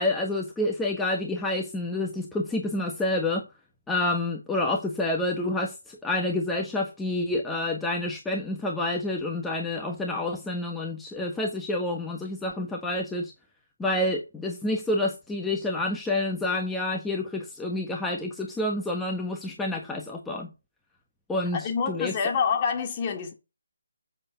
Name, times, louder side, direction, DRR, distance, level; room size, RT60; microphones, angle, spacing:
voice 1, 0.0-3.5 3.9-13.3 13.8-20.5 21.3-22.2, left 2 dB, 5° left, 1.2 m, -28 dB
voice 2, 21.5-23.3, left 6 dB, 25° left, 2.2 m, -27 dB
9.5 x 7.8 x 5.7 m
figure-of-eight pair, 150°, 0 cm